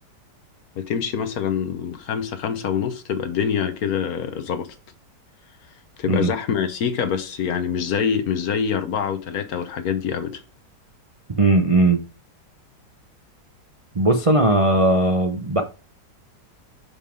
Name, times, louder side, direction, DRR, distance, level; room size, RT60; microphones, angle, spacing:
voice 1, 0.8-4.7 6.0-10.4, left 7 dB, 60° left, 1.2 m, -25 dB
voice 2, 11.4-12.0 13.9-15.6, right 2 dB, 45° right, 0.4 m, -18 dB
5.4 x 5.4 x 5.0 m
omnidirectional pair, 1.9 m